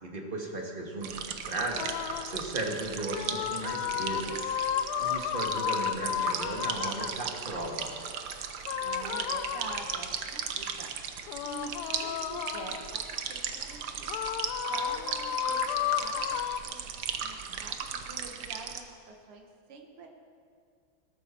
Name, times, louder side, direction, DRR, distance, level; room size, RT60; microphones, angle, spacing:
voice 1, 0.0-4.5 5.0-8.0, right 2 dB, 25° right, 0 dB, 1.7 m, -36 dB
sound 1, 1.0-18.8, right 7 dB, 60° right, 1.2 m, -37 dB
sound 2, 1.8-2.4 3.1-7.2 8.6-10.2 11.3-13.0 14.1-16.6, left 10 dB, 75° left, 0.9 m, -33 dB
voice 2, 8.8-10.9 11.4-13.0 13.3-14.1 14.7-16.2 16.6-16.9 17.2-20.1, right 4 dB, 85° right, 3 dB, 2.2 m, -46 dB
19.0 x 12.5 x 4.4 m, 2.2 s
omnidirectional pair, 2.4 m